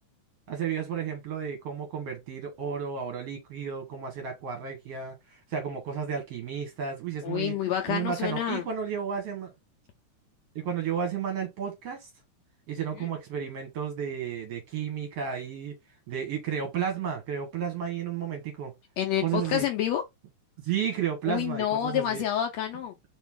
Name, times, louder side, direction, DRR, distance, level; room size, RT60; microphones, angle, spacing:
voice 1, 0.5-7.6 7.9-9.5 10.6-12.1 12.7-15.7 16.1-18.7 19.2-19.7 20.6-22.2, right 8 dB, 60° right, 1.9 m, -32 dB
voice 2, 7.2-8.6 13.0-13.1 19.0-20.0 21.3-22.9, left 11 dB, 75° left, 1.6 m, -28 dB
4.5 x 2.9 x 3.5 m
omnidirectional pair, 3.5 m